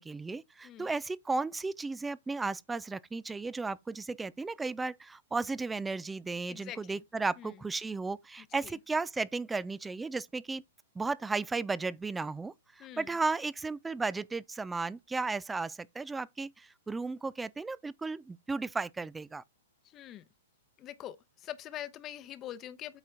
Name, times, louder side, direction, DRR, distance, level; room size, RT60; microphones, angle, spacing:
voice 1, 0.0-10.6 11.0-19.4, right 3 dB, 10° right, 0.3 m, -34 dB
voice 2, 6.5-7.0 7.4-7.6 8.6-8.8 12.8-13.1 19.8-20.2 20.8-23.0, left 12 dB, 30° left, 0.8 m, -44 dB
8.0 x 4.2 x 3.7 m
figure-of-eight pair, 115°, 0 cm